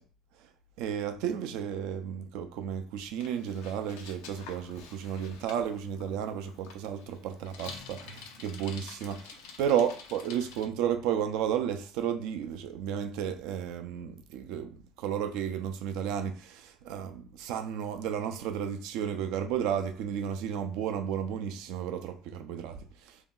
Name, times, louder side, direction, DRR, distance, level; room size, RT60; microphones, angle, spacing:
voice 1, 0.8-23.2, right 8 dB, 75° right, 0.4 m, -33 dB
Bicycle, 3.1-10.7, left 5 dB, 85° left, 0.5 m, -49 dB
2.7 x 2.0 x 3.7 m
supercardioid pair, 90°, 0 cm